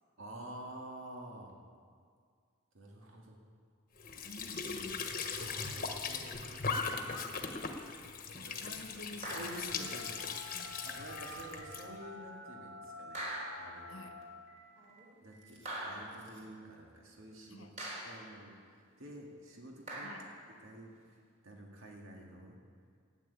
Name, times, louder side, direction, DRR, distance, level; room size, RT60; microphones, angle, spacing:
voice 1, 0.2-1.6 2.7-3.4 5.2-6.6 8.3-8.8 9.3-10.1 10.8-13.3 13.5-14.1 15.2-17.8 18.0-20.2 20.5-22.6, right 1 dB, 80° right, 0 dB, 2.1 m, -50 dB
Squeak / Sink (filling or washing) / Trickle dribble, 4.0-11.9, left 5 dB, 40° left, 1.2 m, -39 dB
voice 2, 4.2-5.1 8.4-9.9 10.5-10.8 13.9-14.1 17.5-17.7 20.0-20.3, left 3 dB, 85° left, 6 dB, 1.2 m, -49 dB
sound 1, 9.2-9.8 11.3-11.5 13.1-13.9 15.6-16.3 17.8-18.3 19.9-20.4, right 1 dB, 40° right, 3.4 m, -42 dB
Telephone, 9.7-16.6, left 1 dB, 65° right, 2.7 m, -50 dB
12.0 x 9.2 x 8.6 m, 2.1 s
head